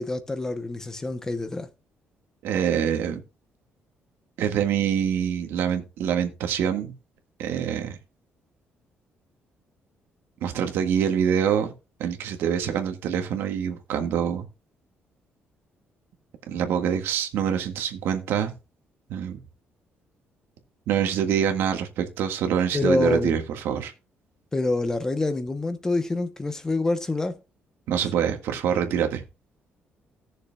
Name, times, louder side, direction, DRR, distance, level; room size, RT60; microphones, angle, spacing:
voice 1, 0.0-1.7 22.7-23.4 24.5-27.4, left 2 dB, 15° left, 0.8 m, -26 dB
voice 2, 2.4-3.2 4.4-6.9 7.4-8.0 10.4-11.7 12.0-14.5 16.5-18.5 19.1-19.4 20.9-23.9 27.9-29.2, right 8 dB, 85° right, 1.7 m, -25 dB
18.0 x 6.7 x 2.3 m
cardioid pair, 170°, 4 cm